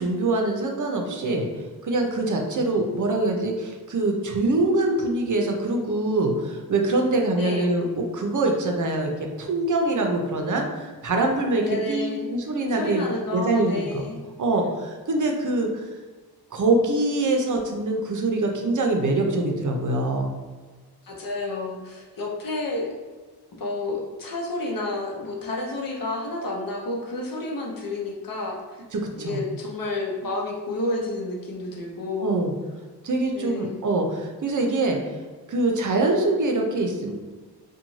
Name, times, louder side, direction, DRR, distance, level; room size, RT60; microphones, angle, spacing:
voice 1, 0.0-1.5 1.8-9.1 9.4-14.1 14.4-15.9 16.5-20.3 28.9-29.4 32.2-32.5 33.0-35.0 35.5-37.1, right 2 dB, 50° right, 2 dB, 0.6 m, -24 dB
voice 2, 7.4-7.8 11.6-12.3 12.8-14.2 21.0-22.9 23.6-28.6 29.2-32.4 33.3-33.8, left 2 dB, 60° left, -1 dB, 0.7 m, -30 dB
2.6 x 2.2 x 3.0 m, 1.4 s
cardioid pair, 55°, 39 cm